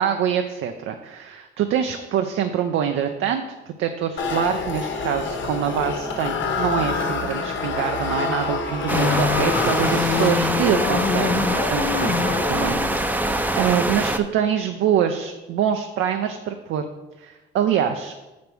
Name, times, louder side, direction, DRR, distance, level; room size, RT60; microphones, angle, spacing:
voice 1, 0.0-3.4 3.8-12.2 12.5-16.9 17.2-18.1, right 9 dB, 85° right, 6 dB, 0.6 m, -25 dB
sound 1, 4.2-10.8, left 4 dB, 70° left, 1.2 m, -27 dB
sound 2, 8.9-14.0, left 9 dB, 45° left, 0.4 m, -27 dB
sound 3, 8.9-14.2, right 1 dB, 10° right, 0.6 m, -24 dB
6.7 x 5.2 x 6.0 m, 1.1 s
cardioid pair, 90°, 20 cm